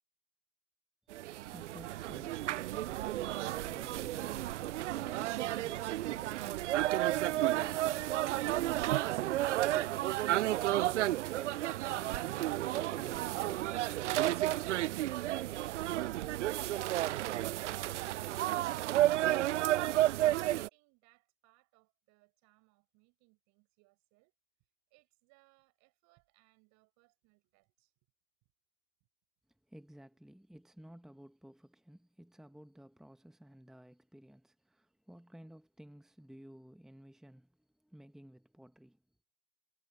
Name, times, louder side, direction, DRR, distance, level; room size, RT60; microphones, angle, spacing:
sound 1, 1.1-20.7, right 14 dB, 65° right, 0.5 m, -32 dB
voice 1, 20.0-24.3 24.9-27.9, right 27 dB, 45° right, 6.1 m, -70 dB
voice 2, 29.5-39.0, equal, ahead, 1.5 m, -56 dB
figure-of-eight pair, 85°, 38 cm